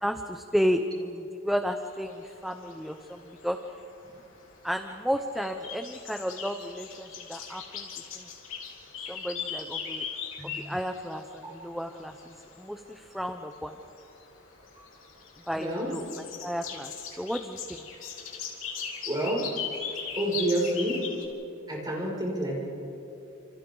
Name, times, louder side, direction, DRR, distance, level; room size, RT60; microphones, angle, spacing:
voice 1, 0.0-3.6 4.6-7.9 8.1-8.3 9.0-10.1 10.4-13.8 15.5-16.0 16.4-16.9 17.2-17.8, equal, ahead, 6 dB, 0.7 m, -32 dB
sound 1, 1.9-21.3, left 6 dB, 75° left, 3.7 m, -40 dB
voice 2, 15.5-15.9 19.1-19.5 20.2-21.0 21.7-22.6, right 1 dB, 20° right, -4 dB, 6.3 m, -28 dB
30.0 x 28.0 x 3.9 m, 3.0 s
head